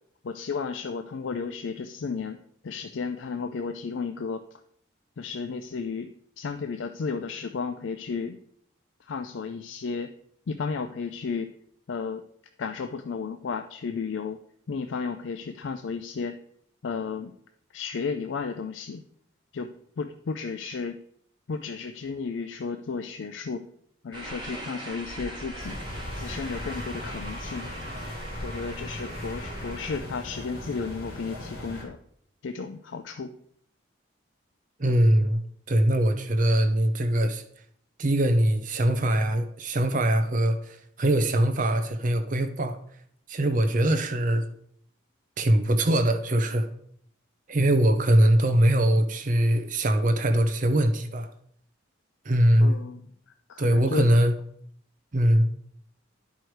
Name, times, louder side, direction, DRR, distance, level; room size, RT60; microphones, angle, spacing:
voice 1, 0.2-2.4 2.6-4.6 5.2-6.1 6.4-8.4 9.0-10.1 10.5-11.5 11.9-12.2 12.6-14.4 14.7-16.4 16.8-17.3 17.7-19.0 19.5-19.7 20.0-21.0 21.5-23.6 24.0-25.8 26.1-27.7 28.4-32.0 32.4-33.4 52.6-53.1 53.5-54.1, left 5 dB, 65° left, 7 dB, 0.4 m, -33 dB
sound 1, 24.1-30.0, equal, 25° right, 1.7 m, -39 dB
sound 2, 25.6-31.8, left 1 dB, 45° left, 2.9 m, -39 dB
voice 2, 34.8-35.4 35.7-37.4 38.0-42.8 43.3-44.4 45.4-46.7 47.5-51.3 52.2-52.7 53.6-54.3 55.1-55.5, right 1 dB, 40° right, 8 dB, 0.6 m, -22 dB
10.5 x 4.7 x 4.6 m, 0.67 s
head